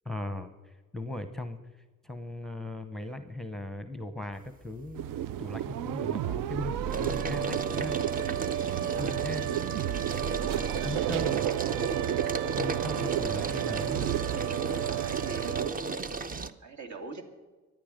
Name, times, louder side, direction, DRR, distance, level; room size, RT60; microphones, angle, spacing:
voice 1, 0.0-1.6 2.0-5.0 5.4-8.0 8.9-9.5 10.8-11.4 12.6-14.0, left 1 dB, ahead, 9 dB, 0.9 m, -38 dB
sound 1, 4.5-5.0 5.4-16.5, right 3 dB, 25° right, 0.7 m, -36 dB
sound 2, 4.9-15.7, right 12 dB, 75° right, 0.5 m, -31 dB
voice 2, 8.8-11.2 11.4-11.6 13.5-17.2, right 3 dB, 60° right, 5 dB, 2.7 m, -45 dB
23.5 x 9.3 x 5.2 m, 1.3 s
cardioid pair, 120°, 32 cm